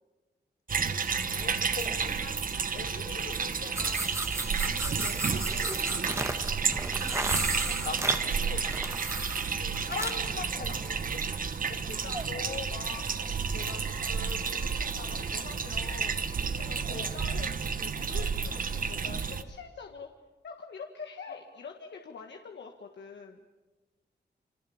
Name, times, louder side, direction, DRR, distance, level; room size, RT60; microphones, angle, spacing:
sound 1, 0.7-19.4, right 5 dB, 50° right, 1.3 m, -31 dB
voice 1, 1.3-2.2 5.3-5.4 6.9-7.1 7.6-9.3 9.6-11.2 11.7-11.9 16.9-17.1 21.3-21.4, left 5 dB, 65° left, 6 dB, 4.1 m, -41 dB
voice 2, 1.9-2.4 2.7-4.2 4.6-5.8 11.8-16.2 16.7-20.1 20.4-23.4, left 5 dB, 85° left, 3 dB, 1.9 m, -45 dB
sound 2, 3.7-10.3, right 2 dB, 15° right, 1.7 m, -35 dB
Squeak, 10.3-12.3 12.8-14.9, right 3 dB, 35° right, 4.4 m, -49 dB
29.0 x 26.0 x 7.3 m, 1.2 s
wide cardioid pair, 175°, 18 cm